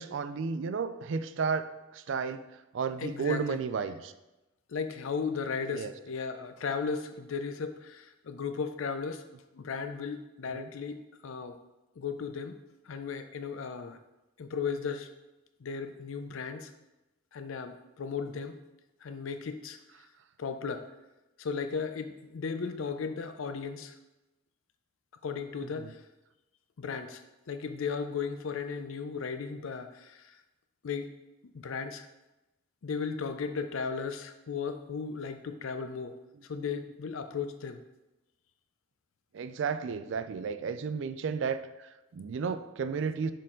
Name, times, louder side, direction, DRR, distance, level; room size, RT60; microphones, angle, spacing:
voice 1, 0.0-2.4 2.7-4.1 5.7-5.9 10.5-10.7 25.8-25.9 39.3-43.3, right 5 dB, 60° right, 11 dB, 0.3 m, -33 dB
voice 2, 3.0-3.6 4.7-9.3 9.5-11.6 12.0-12.6 12.8-14.0 14.4-15.1 15.6-16.7 17.3-18.5 19.0-19.8 20.4-20.9 21.4-24.0 25.2-26.0 26.8-27.2 27.5-30.4 30.8-31.1 31.5-32.1 32.8-36.2 36.4-37.8, left 5 dB, 70° left, 9 dB, 0.5 m, -36 dB
6.5 x 3.9 x 3.7 m, 0.99 s
head